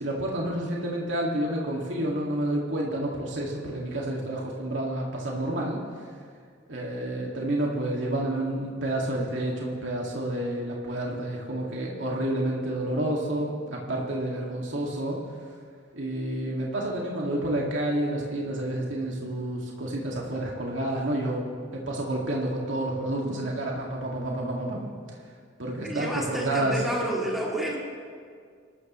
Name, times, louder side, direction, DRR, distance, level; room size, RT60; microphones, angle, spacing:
voice 1, 0.0-5.8 6.7-15.2 15.9-21.4 21.7-25.2 25.6-26.8, right 1 dB, 85° right, -2 dB, 2.1 m, -29 dB
voice 2, 25.8-27.8, right 1 dB, ahead, -5 dB, 2.6 m, -30 dB
26.5 x 13.5 x 3.1 m, 2.1 s
head